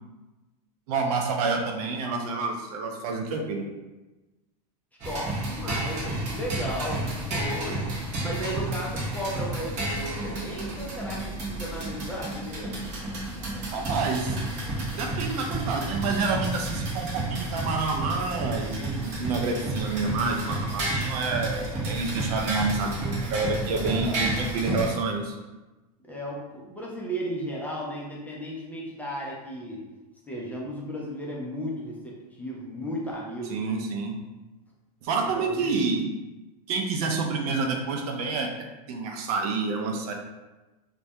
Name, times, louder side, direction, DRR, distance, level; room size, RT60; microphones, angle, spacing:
voice 1, 0.9-3.6 13.7-14.4 14.8-25.3 33.5-34.2 35.0-36.0 36.7-38.5 38.9-40.1, right 4 dB, 70° right, 2 dB, 0.5 m, -28 dB
voice 2, 5.0-7.9 8.2-12.9 23.7-24.2 26.1-29.8 30.3-33.8 35.2-35.8, equal, 10° left, -4 dB, 0.4 m, -35 dB
sound 1, 5.0-24.9, right 2 dB, 35° right, 0.8 m, -31 dB
2.2 x 2.1 x 2.7 m, 1.1 s
supercardioid pair, 130°, 20 cm